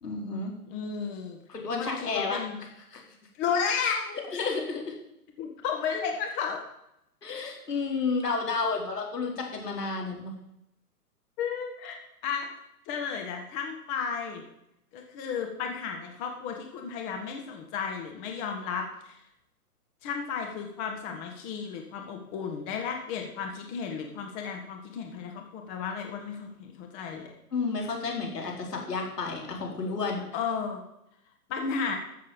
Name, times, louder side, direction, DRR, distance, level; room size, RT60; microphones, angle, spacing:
voice 1, 0.0-0.5 1.5-2.4 2.9-3.0 4.3-4.9 7.2-10.3 27.5-30.2, left 4 dB, 80° left, 0 dB, 4.2 m, -31 dB
voice 2, 0.7-1.4 1.8-2.6 3.4-4.2 5.4-6.6 11.4-12.5 12.9-14.4 14.9-19.1 20.0-27.3 30.3-30.8 31.5-32.0, left 6 dB, 30° left, 3 dB, 1.7 m, -33 dB
13.5 x 7.5 x 7.2 m, 0.83 s
hypercardioid pair, 130°, 47 cm